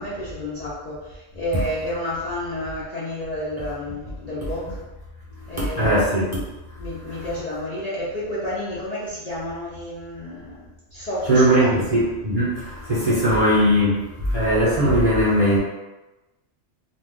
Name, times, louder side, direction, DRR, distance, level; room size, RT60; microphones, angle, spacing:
voice 1, 0.0-4.8 5.5-6.1 6.8-10.6 10.9-12.1 13.0-13.7, left 1 dB, 45° left, -9 dB, 0.6 m, -31 dB
voice 2, 5.8-6.3 11.3-14.0 14.2-15.6, equal, 35° right, -9 dB, 0.7 m, -19 dB
2.5 x 2.3 x 3.5 m, 1.1 s
omnidirectional pair, 1.3 m